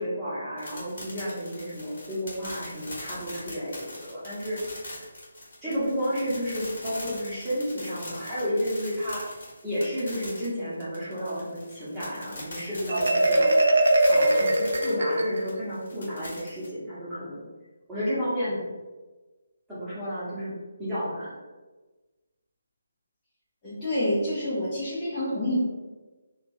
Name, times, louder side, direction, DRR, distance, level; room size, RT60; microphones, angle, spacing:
voice 1, 0.0-4.6 5.6-9.2 9.6-13.5 14.1-17.4 17.9-18.7 19.7-20.5 20.8-21.3, equal, 5° right, -14 dB, 1.1 m, -31 dB
sound 1, 0.6-16.7, left 1 dB, 40° left, 1.2 m, -42 dB
Marimba xylophone, 12.9-15.7, right 1 dB, 60° right, 0.3 m, -21 dB
voice 2, 23.6-25.6, left 1 dB, 20° left, -11 dB, 0.7 m, -27 dB
2.7 x 2.3 x 2.7 m, 1.2 s
figure-of-eight pair, 145°, 0 cm